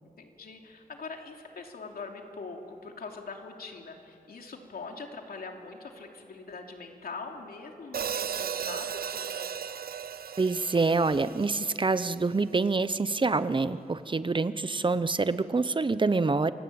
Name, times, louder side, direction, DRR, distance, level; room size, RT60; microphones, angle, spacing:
voice 1, 0.2-9.5, left 4 dB, 90° left, 2 dB, 2.9 m, -42 dB
Hi-hat, 7.9-12.1, right 8 dB, 85° right, 0.6 m, -36 dB
voice 2, 10.4-16.5, right 3 dB, 35° right, 14 dB, 0.8 m, -26 dB
27.5 x 22.5 x 8.7 m, 2.8 s
wide cardioid pair, 100°, 15 cm